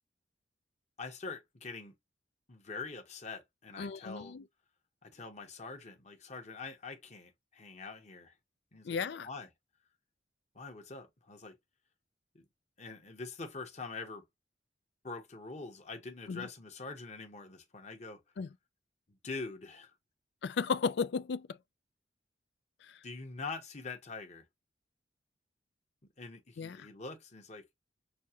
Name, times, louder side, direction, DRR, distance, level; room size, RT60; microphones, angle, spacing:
voice 1, 1.0-1.9 2.5-4.3 5.0-8.3 8.7-9.0 9.2-9.5 10.5-11.6 12.3-12.4 12.8-14.2 15.0-18.2 19.1-19.9 23.0-24.4 26.2-27.7, left 4 dB, 40° left, 1.1 m, -44 dB
voice 2, 3.8-4.4 8.8-9.3 16.3-16.5 18.4-18.5 20.4-21.6 22.8-23.0 26.6-26.9, left 5 dB, 65° left, 0.4 m, -35 dB
6.2 x 2.3 x 2.8 m
head